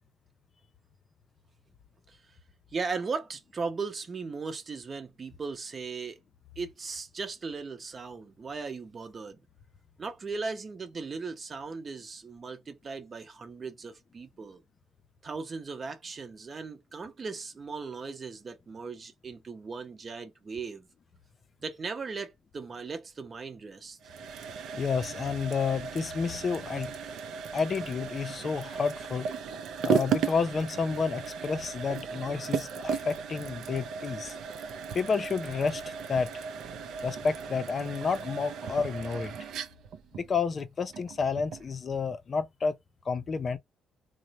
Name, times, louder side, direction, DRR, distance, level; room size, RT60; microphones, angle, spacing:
voice 1, 2.7-6.2 6.6-9.4 10.0-14.6 15.2-20.9 21.6-24.0, right 4 dB, 40° right, 0.7 m, -37 dB
sound 1, 24.0-41.7, right 6 dB, 75° right, 0.5 m, -36 dB
voice 2, 24.7-26.9 27.5-29.3 29.8-34.4 34.9-36.3 37.0-39.3 40.1-42.8 43.1-43.6, left 5 dB, 45° left, 0.4 m, -30 dB
3.0 x 2.1 x 2.8 m
cardioid pair, 90°, 0 cm